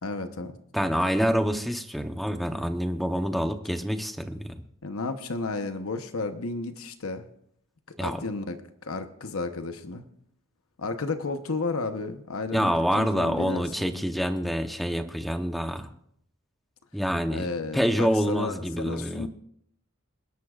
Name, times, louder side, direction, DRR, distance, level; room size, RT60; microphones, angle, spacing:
voice 1, 0.0-0.6 4.8-7.3 8.0-10.0 10.8-13.9 17.3-19.3, left 3 dB, 85° left, 7 dB, 1.0 m, -33 dB
voice 2, 0.7-4.5 8.0-8.2 12.5-15.9 16.9-17.5 17.7-19.3, equal, ahead, 6 dB, 0.9 m, -26 dB
29.0 x 11.5 x 2.5 m, 0.70 s
head